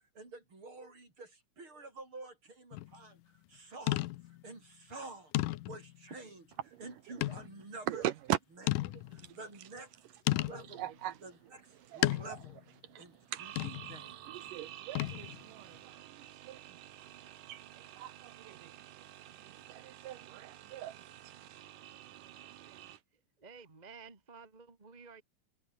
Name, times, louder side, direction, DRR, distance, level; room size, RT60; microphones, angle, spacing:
voice 1, 0.1-6.5 6.8-8.0 9.1-9.9 10.3-10.8 11.2-12.6 13.0-13.5 13.9-14.2, right 3 dB, 40° right, 7.5 m, -49 dB
sound 1, 2.7-3.0 3.9-4.4 4.9-5.0 5.3-6.0 7.2-7.5 8.0-8.1 8.7-9.3 10.3-10.7 12.0-12.6 13.6-14.0 14.9-15.4, left 18 dB, 80° left, 2.3 m, -33 dB
voice 2, 7.9-8.4 8.8-9.4 10.5-11.2 11.8-12.4 12.8-23.0, right 13 dB, 85° right, 2.7 m, -42 dB
voice 3, 23.1-25.2, right 5 dB, 20° right, 1.2 m, -53 dB
omnidirectional pair, 3.7 m